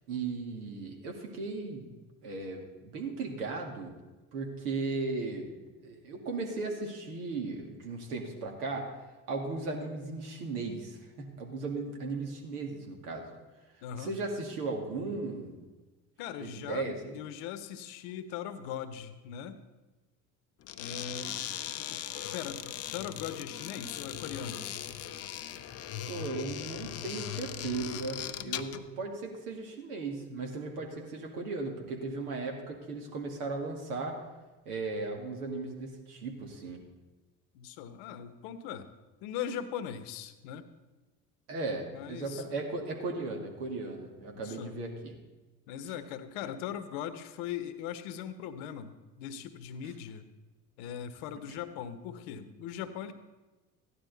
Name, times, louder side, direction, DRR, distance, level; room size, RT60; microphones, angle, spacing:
voice 1, 0.1-1.9 2.2-3.9 4.3-5.5 5.8-8.9 9.3-13.3 14.0-15.6 16.4-17.1 26.1-34.2 34.7-36.8 41.5-45.2 51.5-51.6, right 3 dB, 75° right, 1 dB, 2.2 m, -36 dB
voice 2, 13.8-14.1 16.2-19.6 20.8-21.4 21.7-24.7 37.5-38.9 39.2-40.7 41.8-42.5 44.3-44.8 45.7-48.9 49.2-50.3 50.8-53.1, left 9 dB, 60° left, 12 dB, 1.1 m, -40 dB
sound 1, 20.6-28.9, left 10 dB, 30° left, 0.7 m, -39 dB
14.5 x 11.0 x 4.0 m, 1.2 s
hypercardioid pair, 70°, 47 cm